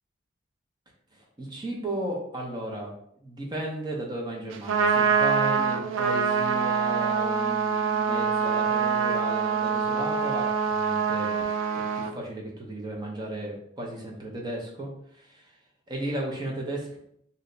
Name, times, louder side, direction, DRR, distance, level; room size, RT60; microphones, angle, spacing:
voice 1, 1.1-2.9 3.2-11.5 11.7-15.4 15.9-17.0, right 1 dB, 20° right, -2 dB, 0.6 m, -35 dB
Trumpet, 4.5-12.1, right 6 dB, 85° right, 0.3 m, -25 dB
2.7 x 2.1 x 3.8 m, 0.71 s
head